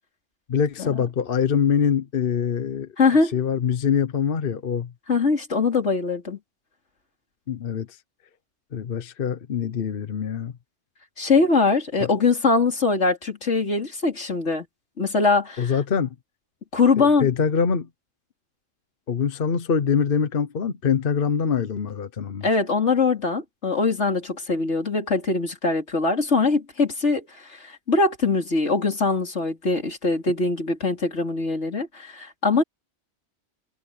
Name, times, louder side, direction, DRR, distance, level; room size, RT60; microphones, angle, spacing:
voice 1, 0.5-2.9 3.2-4.9 7.5-8.0 8.7-10.5 12.0-12.1 15.6-16.1 17.0-17.9 19.1-22.5, left 7 dB, 55° left, 1.1 m, -24 dB
voice 2, 3.0-3.3 5.1-6.4 11.2-14.6 15.0-15.7 16.7-17.3 22.4-32.6, left 3 dB, 85° left, 3.4 m, -22 dB
omnidirectional pair, 1.2 m